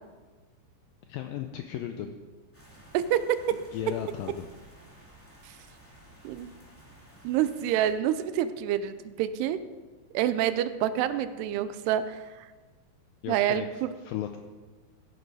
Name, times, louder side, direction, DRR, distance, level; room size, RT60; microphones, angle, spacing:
voice 1, 1.1-2.2 3.7-4.4 13.2-13.7 14.0-14.4, left 10 dB, 85° left, 6 dB, 2.0 m, -35 dB
sound 1, 2.5-7.9, right 1 dB, 5° left, 1.4 m, -54 dB
voice 2, 2.9-3.6 5.4-5.5 6.2-6.5 7.2-9.6 10.1-12.5 13.3-13.9, right 11 dB, 85° right, 13 dB, 2.7 m, -27 dB
15.0 x 9.3 x 4.8 m, 1.3 s
omnidirectional pair, 4.7 m